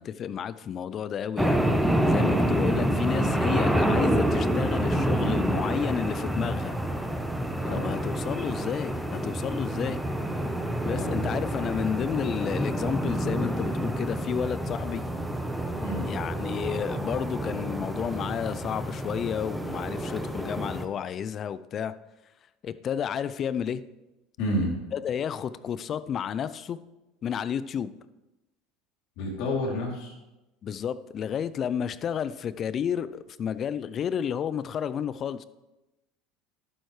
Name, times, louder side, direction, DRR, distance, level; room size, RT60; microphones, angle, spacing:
voice 1, 0.0-1.6 2.0-6.7 7.7-10.0 10.8-15.0 16.0-21.9 22.6-23.8 24.9-26.8 27.2-27.9 30.6-35.4, left 8 dB, 40° left, 15 dB, 0.5 m, -31 dB
sound 1, 1.4-20.8, right 1 dB, 5° right, 0.9 m, -28 dB
voice 2, 24.4-24.7 29.2-30.1, left 1 dB, 65° left, -1 dB, 3.0 m, -30 dB
11.5 x 9.3 x 3.2 m, 1.0 s
hypercardioid pair, 90°, 0 cm